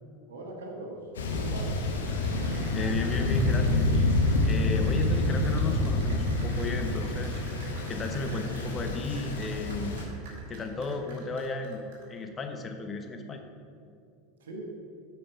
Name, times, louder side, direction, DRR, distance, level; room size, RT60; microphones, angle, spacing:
voice 1, 0.3-1.7 4.8-5.2 14.4-14.7, right 2 dB, 80° right, 1 dB, 1.4 m, -41 dB
Thunder, 1.1-10.0, left 2 dB, 80° left, 1.0 m, -27 dB
Cheering / Applause, 1.9-12.2, right 2 dB, 65° right, 2.1 m, -49 dB
voice 2, 2.7-3.9 4.4-7.4 7.9-10.0 10.5-13.4, left 3 dB, 30° left, 5 dB, 0.9 m, -34 dB
8.7 x 4.7 x 5.1 m, 2.4 s
hypercardioid pair, 90°, 0 cm